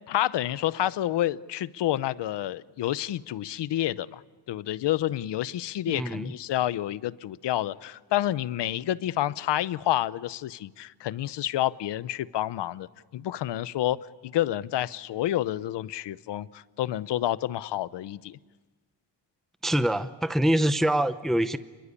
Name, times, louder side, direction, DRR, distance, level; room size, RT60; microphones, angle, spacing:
voice 1, 0.1-4.2 4.5-12.9 13.1-14.0 14.2-18.4, left 13 dB, 75° left, 0.9 m, -29 dB
voice 2, 5.9-6.3 19.6-21.6, right 1 dB, ahead, 0.8 m, -25 dB
29.0 x 22.0 x 8.4 m
cardioid pair, 115°, 42 cm